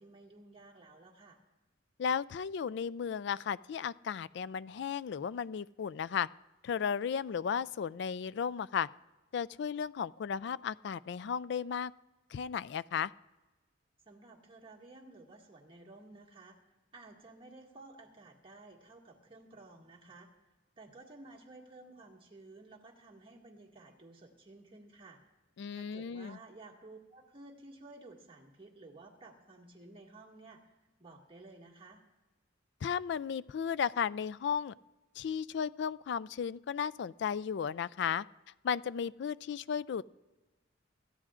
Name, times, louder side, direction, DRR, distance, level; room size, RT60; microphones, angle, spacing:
voice 1, 0.0-1.4 14.1-16.6 16.9-20.3 20.8-25.2 25.7-30.6 31.0-32.0, right 2 dB, 25° right, -2 dB, 1.9 m, -54 dB
voice 2, 2.0-6.3 6.6-8.9 9.3-11.9 12.3-13.1 25.6-26.4 32.8-34.7 35.2-38.2 38.6-40.0, left 7 dB, 60° left, 19 dB, 0.3 m, -34 dB
26.5 x 13.5 x 2.5 m, 1.2 s
head